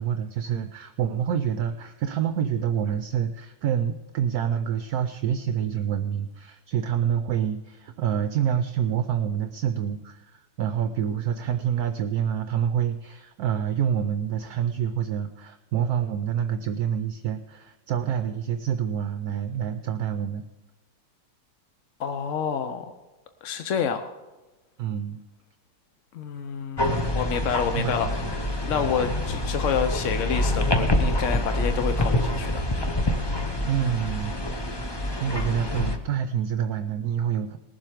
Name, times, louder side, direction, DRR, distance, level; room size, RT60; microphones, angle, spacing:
voice 1, 0.0-20.4 24.8-25.2 27.7-28.4 33.7-34.7 35.1-37.6, right 9 dB, 70° right, 9 dB, 1.0 m, -27 dB
voice 2, 22.0-22.9 23.4-24.1 26.1-28.2 28.6-32.6, left 7 dB, 60° left, 8 dB, 0.8 m, -28 dB
sound 1, 26.8-36.0, left 1 dB, 30° left, 0.4 m, -26 dB
19.5 x 7.5 x 5.0 m, 1.1 s
omnidirectional pair, 2.0 m